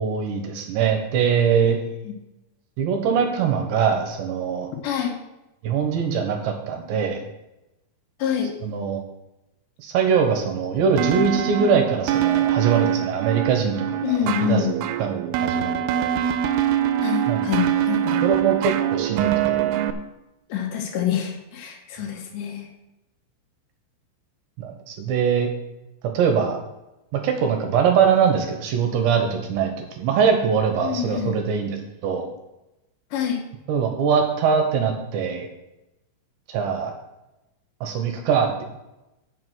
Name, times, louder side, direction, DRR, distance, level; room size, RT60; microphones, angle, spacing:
voice 1, 0.0-1.8 2.8-4.7 5.6-7.2 8.6-9.0 9.8-14.7 15.0-15.1 15.4-16.1 17.3-17.4 18.2-19.6 24.6-25.5 26.1-26.6 27.1-31.8 32.0-32.3 33.7-35.5 36.5-36.9 37.8-38.6, right 6 dB, 75° right, 4 dB, 3.1 m, -22 dB
voice 2, 4.8-5.1 8.2-8.5 14.0-14.7 17.0-18.2 20.5-22.7 30.8-31.3 33.1-33.4, left 9 dB, 70° left, 2 dB, 3.1 m, -26 dB
sound 1, 11.0-19.9, right 10 dB, 90° right, 3.2 m, -24 dB
8.7 x 7.6 x 6.2 m, 0.94 s
omnidirectional pair, 5.7 m